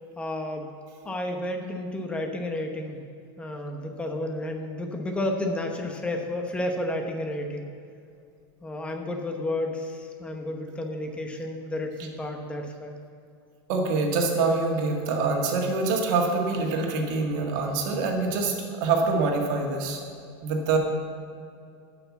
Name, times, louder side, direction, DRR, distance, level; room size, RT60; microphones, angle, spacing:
voice 1, 0.2-0.7 1.0-3.0 3.4-7.6 8.6-13.0, left 1 dB, 10° left, 3 dB, 0.9 m, -31 dB
voice 2, 13.7-20.0 20.4-20.8, right 3 dB, 55° right, 1 dB, 1.8 m, -25 dB
11.5 x 5.9 x 7.2 m, 2.4 s
supercardioid pair, 155°, 13 cm